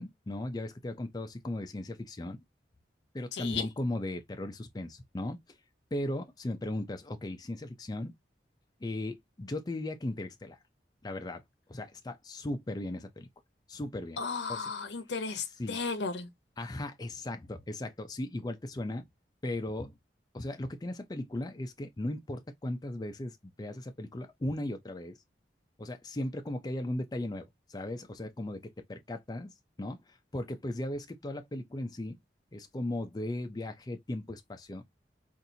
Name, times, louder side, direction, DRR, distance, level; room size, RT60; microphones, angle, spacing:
voice 1, 0.0-2.4 3.1-5.6 5.9-8.1 8.8-10.6 11.0-11.4 11.7-13.3 13.7-14.2 14.5-14.7 15.6-15.8 16.6-19.1 19.4-19.9 20.3-25.2 25.8-32.2 32.5-34.8, left 1 dB, 20° left, 0.5 m, -37 dB
voice 2, 3.3-3.7 14.2-16.3, left 4 dB, 80° left, 0.8 m, -34 dB
4.1 x 2.5 x 2.7 m
head